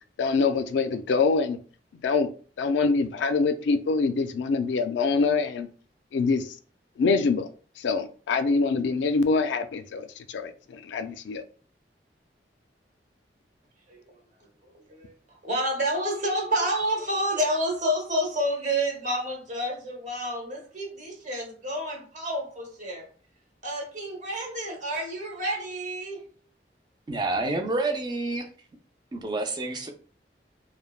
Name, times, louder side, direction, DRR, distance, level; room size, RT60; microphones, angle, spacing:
voice 1, 0.2-1.6 2.0-2.3 2.6-5.7 6.1-6.5 7.0-7.5 7.8-11.4, left 4 dB, 90° left, 10 dB, 0.3 m, -25 dB
voice 2, 13.9-23.1 23.6-26.2, equal, 45° right, 1 dB, 0.9 m, -29 dB
voice 3, 27.1-28.5 29.1-29.9, right 2 dB, 25° right, 4 dB, 0.4 m, -28 dB
3.2 x 2.1 x 2.3 m, 0.41 s
head